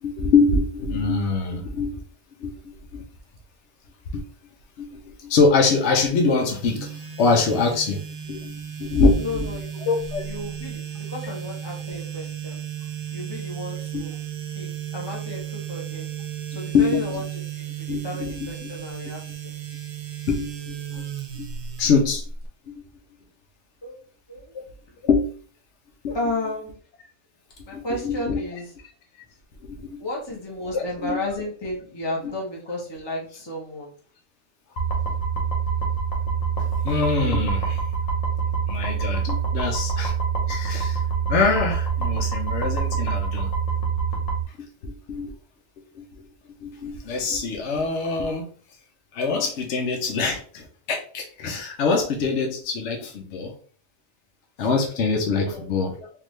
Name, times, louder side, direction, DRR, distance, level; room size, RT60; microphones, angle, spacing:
voice 1, 0.0-2.0 2.4-3.0 4.1-4.2 4.8-8.0 8.3-9.2 9.8-10.2 13.9-14.0 16.7-17.1 17.9-18.7 20.3-21.0 21.3-21.5 21.8-22.2 22.7-22.8 24.5-24.6 25.0-25.3 26.0-26.2 27.7-28.4 29.6-30.0 30.7-31.2 32.2-32.3 36.8-37.9 38.7-40.1 40.5-41.0 41.3-43.5 44.6-45.3 45.9-46.2 46.6-48.5 49.1-53.5 54.6-56.1, left 4 dB, 65° left, 2 dB, 0.9 m, -24 dB
sound 1, 6.5-22.5, right 9 dB, 75° right, 0.3 m, -34 dB
voice 2, 9.2-9.8 10.2-12.6 13.1-14.2 14.5-16.0 16.5-17.2 17.5-19.5 23.8-24.0 24.3-24.4 26.1-26.8 27.7-28.7 29.8-33.9 55.3-55.7, left 1 dB, 20° left, -2 dB, 0.9 m, -33 dB
sound 2, 34.8-44.4, right 6 dB, 80° left, 1.3 m, -25 dB
3.5 x 2.4 x 3.1 m, 0.43 s
omnidirectional pair, 1.4 m